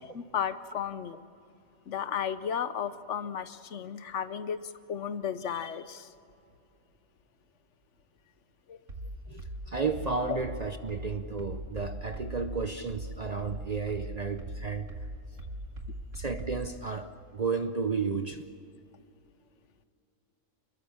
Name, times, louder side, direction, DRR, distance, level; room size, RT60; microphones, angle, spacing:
voice 1, 0.1-1.2 1.9-4.6 4.9-6.1 8.7-8.8 10.3-10.4, left 8 dB, 65° left, 1.1 m, -34 dB
sound 1, 8.9-16.7, right 1 dB, 70° right, 2.5 m, -40 dB
voice 2, 9.3-14.9 16.1-18.5, right 4 dB, 40° right, 0.6 m, -33 dB
27.0 x 21.5 x 7.1 m
omnidirectional pair, 1.4 m